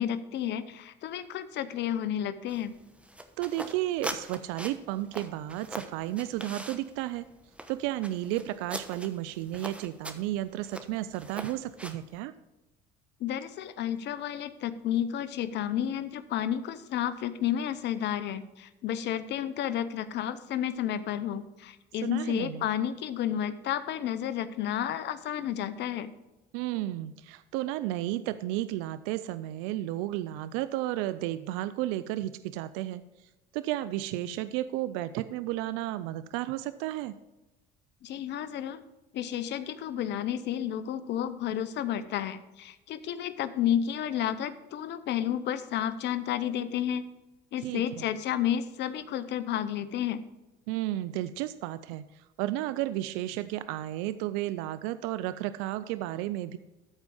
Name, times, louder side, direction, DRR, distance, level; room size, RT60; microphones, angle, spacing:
voice 1, 0.0-2.7 13.2-26.1 38.0-38.8 39.1-47.0 47.5-50.2, left 10 dB, 60° left, 13 dB, 0.8 m, -31 dB
sound 1, 2.5-12.2, right 1 dB, 5° right, 1.0 m, -42 dB
voice 2, 3.4-7.3 7.7-12.3 22.0-22.7 26.5-33.0 33.5-37.1 47.6-48.1 50.7-56.6, right 14 dB, 80° right, 14 dB, 0.4 m, -33 dB
13.0 x 4.7 x 5.4 m, 1.0 s
supercardioid pair, 75°, 20 cm